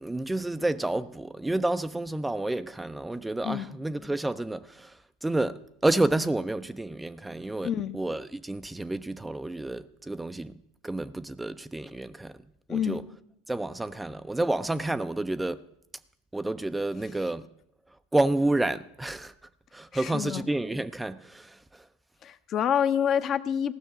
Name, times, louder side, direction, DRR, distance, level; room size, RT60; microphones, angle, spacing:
voice 1, 0.0-4.9 5.2-10.5 10.8-12.3 12.7-13.0 13.5-15.6 16.3-17.4 18.1-19.3 19.7-21.6, right 2 dB, 10° right, 0.4 m, -29 dB
voice 2, 7.6-7.9 12.7-13.0 19.9-20.5 22.2-23.7, left 8 dB, 40° left, 0.7 m, -27 dB
15.5 x 6.3 x 7.6 m
hypercardioid pair, 85°, 0 cm